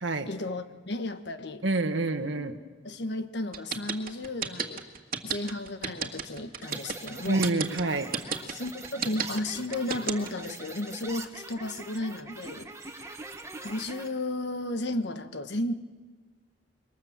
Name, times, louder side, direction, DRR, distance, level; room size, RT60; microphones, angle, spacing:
voice 1, 0.3-1.6 2.8-4.9 5.2-7.5 8.5-13.1 13.6-15.7, left 2 dB, 65° left, 9 dB, 1.4 m, -34 dB
voice 2, 1.6-2.6 7.3-8.1, right 2 dB, 80° right, 6 dB, 1.5 m, -27 dB
sound 1, 3.5-10.5, right 6 dB, 50° right, 1.9 m, -31 dB
sound 2, 6.6-14.1, right 3 dB, 15° right, 1.5 m, -43 dB
27.0 x 23.5 x 7.4 m, 1.4 s
head